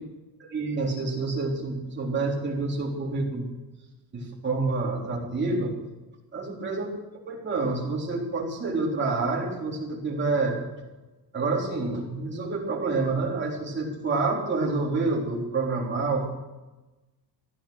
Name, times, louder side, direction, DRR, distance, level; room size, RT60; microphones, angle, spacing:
voice 1, 0.5-3.6 4.1-5.7 6.3-6.9 7.3-10.6 11.3-16.3, right 3 dB, 25° right, -3 dB, 3.8 m, -28 dB
16.0 x 12.0 x 6.5 m, 1.1 s
cardioid pair, 175°, 41 cm